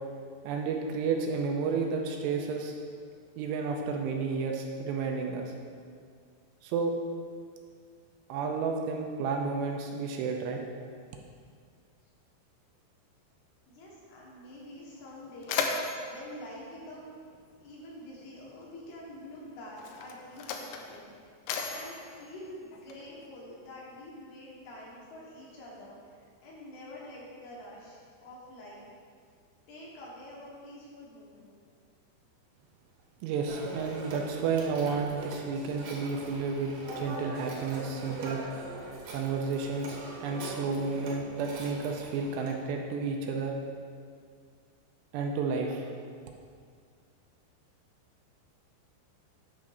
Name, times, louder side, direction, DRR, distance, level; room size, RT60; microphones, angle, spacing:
voice 1, 0.4-2.7 3.4-5.5 6.6-6.9 8.3-10.6 33.2-38.4 39.1-43.5 45.1-45.9, right 4 dB, 80° right, 2 dB, 2.6 m, -31 dB
voice 2, 13.7-17.2 17.6-21.4 21.7-28.8 29.7-31.5, left 1 dB, 70° left, -5 dB, 3.2 m, -47 dB
Mechanisms, 14.5-14.6 15.0-17.7 18.7-18.9 19.7-23.3, left 5 dB, 85° left, 2.3 m, -37 dB
Telephone, 33.5-42.5, right 2 dB, 65° right, 2.1 m, -42 dB
9.6 x 3.7 x 6.4 m, 2.1 s
omnidirectional pair, 5.1 m